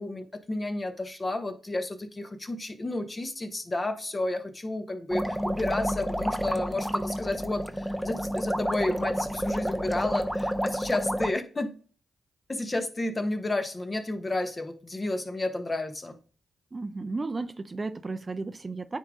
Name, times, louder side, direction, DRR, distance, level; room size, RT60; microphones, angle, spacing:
voice 1, 0.0-11.7 12.5-16.2, left 2 dB, 35° left, 1.2 m, -31 dB
sound 1, 5.1-11.3, equal, ahead, 0.7 m, -30 dB
voice 2, 16.7-19.0, right 3 dB, 35° right, 0.5 m, -34 dB
9.4 x 3.8 x 3.7 m
supercardioid pair, 50°, 0 cm